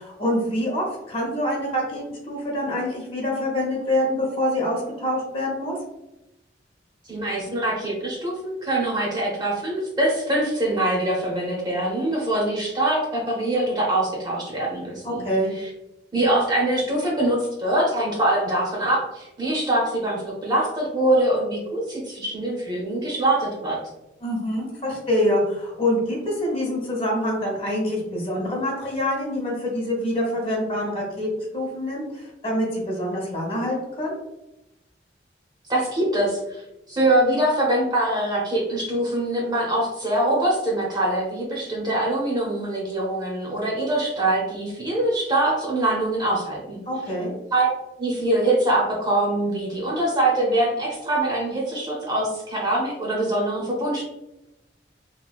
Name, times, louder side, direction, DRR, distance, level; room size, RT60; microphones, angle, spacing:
voice 1, 0.0-5.7 15.0-15.5 24.2-34.1 46.9-47.3, left 1 dB, 30° left, -3 dB, 0.8 m, -25 dB
voice 2, 7.1-15.3 15.5-15.7 16.1-23.8 35.7-36.6 36.9-46.8 47.5-47.7 48.0-54.0, right 1 dB, 25° right, -3 dB, 0.7 m, -23 dB
3.0 x 2.6 x 2.3 m, 0.93 s
head